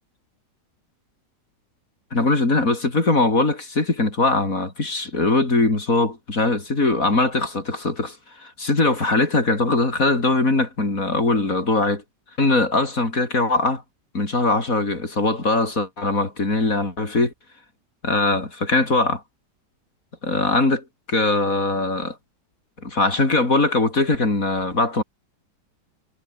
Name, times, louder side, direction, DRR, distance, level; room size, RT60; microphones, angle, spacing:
voice 1, 2.1-12.0 12.4-13.8 14.1-17.3 18.0-19.2 20.2-22.2 22.8-25.0, left 2 dB, 50° left, 4.6 m, -21 dB
omnidirectional pair, 1.9 m